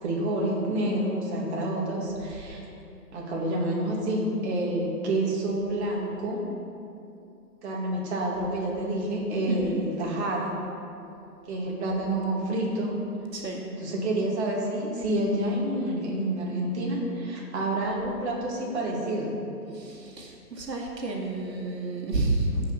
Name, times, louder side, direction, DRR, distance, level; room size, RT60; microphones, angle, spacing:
voice 1, 0.0-2.6 3.1-6.4 7.6-10.6 11.5-12.9 13.7-19.3, right 1 dB, 45° right, -3 dB, 2.5 m, -28 dB
voice 2, 9.5-9.8 13.3-13.6 19.7-22.6, right 2 dB, 85° right, -1 dB, 2.2 m, -30 dB
15.0 x 5.6 x 5.7 m, 2.7 s
hypercardioid pair, 150°, 49 cm